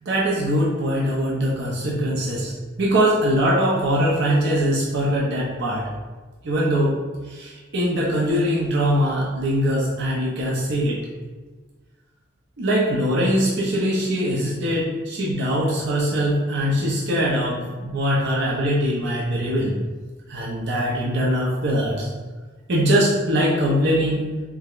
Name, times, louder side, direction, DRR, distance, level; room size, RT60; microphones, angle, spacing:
voice 1, 0.0-2.5 2.8-5.8 6.4-6.9 7.3-11.0 12.6-19.8 20.3-22.1 22.7-24.3, equal, 60° right, -5 dB, 0.6 m, -22 dB
4.5 x 2.1 x 2.4 m, 1.3 s
head